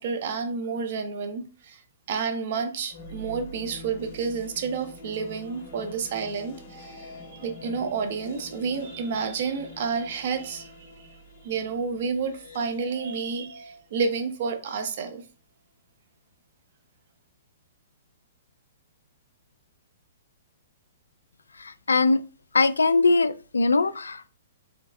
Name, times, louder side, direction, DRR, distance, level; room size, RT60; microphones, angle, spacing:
voice 1, 0.0-1.8 2.1-10.7 11.0-11.1 11.4-15.2, right 5 dB, 55° right, 0.9 m, -30 dB
sound 1, 2.9-15.0, left 1 dB, 60° left, 2.2 m, -45 dB
voice 2, 21.6-22.2 22.5-24.3, left 3 dB, 90° left, 0.3 m, -21 dB
4.5 x 3.4 x 3.5 m
hypercardioid pair, 130°, 0 cm